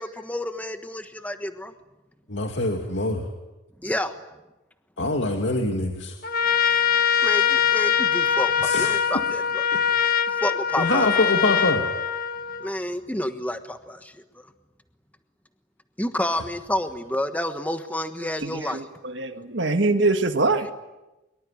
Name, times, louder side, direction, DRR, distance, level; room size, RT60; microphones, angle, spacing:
voice 1, 0.0-1.7 3.8-4.1 6.6-6.8 7.2-9.7 10.3-11.3 12.6-14.1 16.0-18.9, left 1 dB, 10° left, 8 dB, 1.3 m, -29 dB
voice 2, 2.3-3.2 5.0-6.1 8.6-8.9 10.8-11.8, left 2 dB, 65° left, 3 dB, 2.5 m, -24 dB
Trumpet, 6.2-12.8, left 8 dB, 45° left, 1.4 m, -23 dB
voice 3, 18.4-20.7, right 3 dB, 60° right, 7 dB, 1.8 m, -24 dB
24.0 x 23.5 x 10.0 m, 1.0 s
head